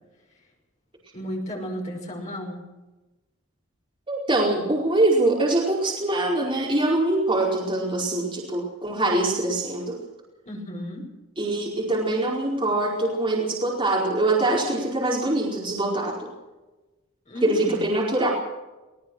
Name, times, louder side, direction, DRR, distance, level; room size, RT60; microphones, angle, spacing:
voice 1, 1.1-2.6 10.5-11.0 17.3-17.8, equal, 35° left, 0 dB, 5.9 m, -33 dB
voice 2, 4.1-10.0 11.4-16.3 17.4-18.3, right 2 dB, 25° right, -4 dB, 4.7 m, -23 dB
21.5 x 19.0 x 6.5 m, 1.1 s
head